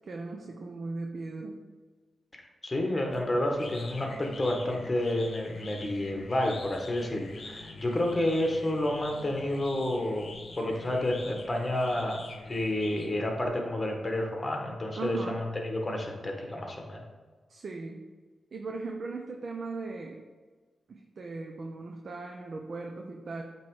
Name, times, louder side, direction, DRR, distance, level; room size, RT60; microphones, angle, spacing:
voice 1, 0.1-1.6 14.9-15.4 17.5-18.0 18.5-20.2 20.9-23.4, right 3 dB, 55° right, 2 dB, 0.6 m, -38 dB
voice 2, 2.3-17.0, left 1 dB, 25° left, 1 dB, 1.3 m, -30 dB
sound 1, 3.1-13.5, left 3 dB, 55° left, 1.0 m, -45 dB
8.3 x 3.1 x 4.8 m, 1.4 s
cardioid pair, 80°, 0 cm